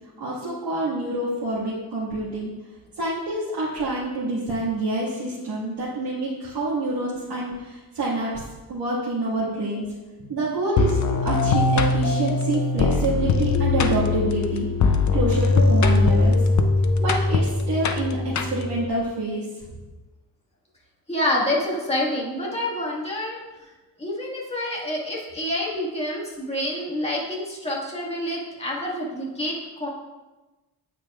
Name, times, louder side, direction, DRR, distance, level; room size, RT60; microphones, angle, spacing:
voice 1, 0.2-2.5 3.0-8.3 8.7-9.8 10.2-14.7 15.1-16.4 17.0-19.4, right 2 dB, 85° right, -8 dB, 1.9 m, -27 dB
sound 1, 10.8-18.9, left 3 dB, 45° left, 0.6 m, -21 dB
voice 2, 21.1-23.4 24.0-29.9, left 1 dB, 15° left, -4 dB, 1.8 m, -27 dB
9.1 x 8.7 x 2.4 m, 1.1 s
wide cardioid pair, 155°, 39 cm